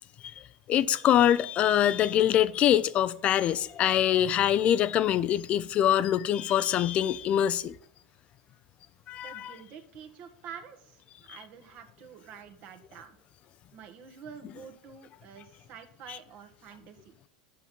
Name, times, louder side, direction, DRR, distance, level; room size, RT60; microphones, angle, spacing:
voice 1, 0.7-7.7 9.1-9.5 16.1-16.2, left 11 dB, 40° left, 0.4 m, -24 dB
voice 2, 9.2-13.2 13.7-17.1, right 7 dB, 50° right, 1.3 m, -48 dB
8.4 x 5.9 x 5.4 m
hypercardioid pair, 95°, 3 cm